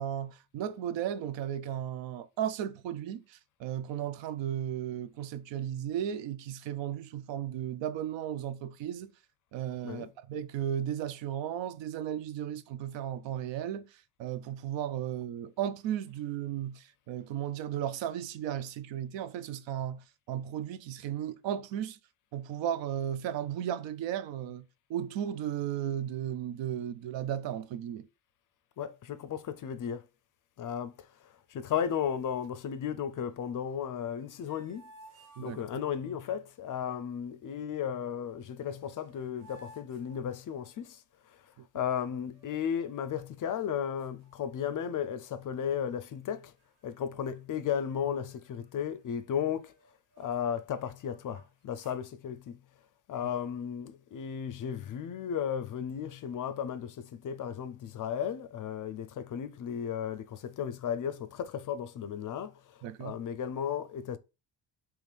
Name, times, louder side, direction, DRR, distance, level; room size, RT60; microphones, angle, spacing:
voice 1, 0.0-9.1 9.5-22.0 22.3-24.6 24.9-28.1 35.4-35.6 41.6-41.7 62.8-63.2, right 10 dB, 65° right, 0.6 m, -35 dB
voice 2, 28.8-30.0 30.6-30.9 31.5-34.8 35.4-41.0 41.7-46.5 46.8-49.7 50.2-52.6 53.1-62.5 63.0-64.2, left 8 dB, 45° left, 0.5 m, -34 dB
sound 1, 34.1-36.1 38.3-38.4 38.7-40.9 42.2-43.1 43.6-43.7 44.0-45.1 45.4-45.7 46.3-46.9 47.2-47.4 47.7-50.6 51.0-52.0, right 1 dB, 80° right, 1.3 m, -58 dB
3.6 x 3.0 x 3.3 m
cardioid pair, 85°, 47 cm